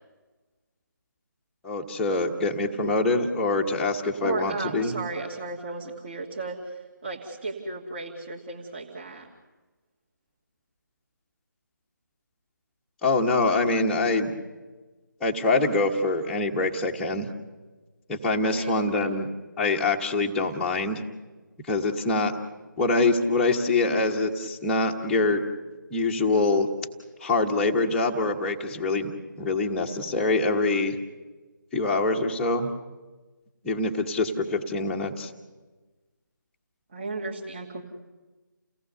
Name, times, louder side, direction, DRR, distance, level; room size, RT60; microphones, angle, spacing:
voice 1, 1.6-4.9 13.0-14.3 15.2-17.3 18.1-19.3 19.6-21.0 21.7-22.3 22.8-25.4 25.9-26.7 27.2-31.0 31.7-32.7 33.6-35.3, left 3 dB, 5° left, -3 dB, 1.1 m, -24 dB
voice 2, 4.2-9.3 18.5-19.2 36.9-37.8, right 3 dB, 35° right, -2 dB, 2.5 m, -35 dB
29.5 x 18.0 x 6.8 m, 1.2 s
figure-of-eight pair, 155°, 11 cm